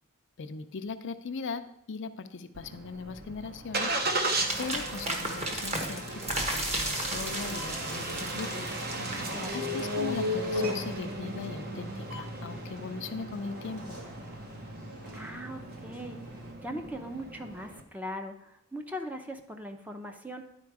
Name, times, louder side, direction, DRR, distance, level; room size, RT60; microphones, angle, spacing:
voice 1, 0.4-3.9 4.6-8.7 9.5-14.0, left 4 dB, 60° left, 9 dB, 0.5 m, -39 dB
Engine starting, 2.5-17.8, right 1 dB, 45° right, 0.9 m, -35 dB
sound 1, 4.5-10.0, right 1 dB, 30° right, 1.2 m, -34 dB
sound 2, 5.9-16.5, right 1 dB, 85° right, 2.4 m, -46 dB
voice 2, 9.2-9.9 15.1-20.4, equal, 10° right, 5 dB, 0.6 m, -40 dB
10.5 x 4.4 x 4.7 m, 0.77 s
head